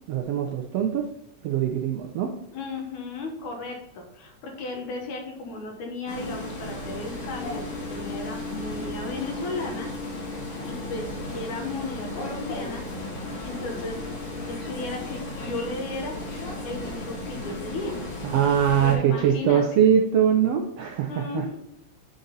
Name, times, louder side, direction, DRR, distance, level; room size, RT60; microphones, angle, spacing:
voice 1, 0.1-1.1 1.4-2.3 18.2-21.4, right 8 dB, 90° right, 2 dB, 1.4 m, -22 dB
voice 2, 2.5-7.6 7.9-9.9 10.7-12.8 13.4-14.1 14.5-16.2 16.6-18.0 18.8-19.6 21.1-21.6, left 3 dB, 80° left, 2 dB, 2.6 m, -35 dB
sound 1, 6.1-19.0, left 2 dB, 50° left, 2.2 m, -35 dB
8.7 x 3.9 x 4.0 m, 0.80 s
omnidirectional pair, 3.5 m